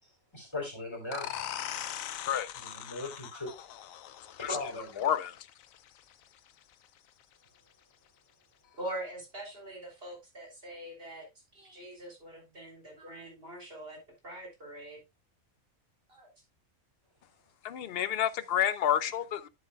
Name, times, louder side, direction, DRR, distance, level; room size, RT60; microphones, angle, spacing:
voice 1, 0.0-1.5 2.6-3.5 4.4-5.0, left 2 dB, 20° left, 3.7 m, -39 dB
sound 1, 1.1-6.5, left 11 dB, 75° left, 1.0 m, -41 dB
voice 2, 5.0-5.4 17.6-19.5, left 10 dB, 60° left, 0.7 m, -29 dB
voice 3, 8.8-14.0 14.2-15.0 16.1-16.3, right 1 dB, 45° right, 3.8 m, -43 dB
11.0 x 7.7 x 2.3 m
omnidirectional pair, 1.4 m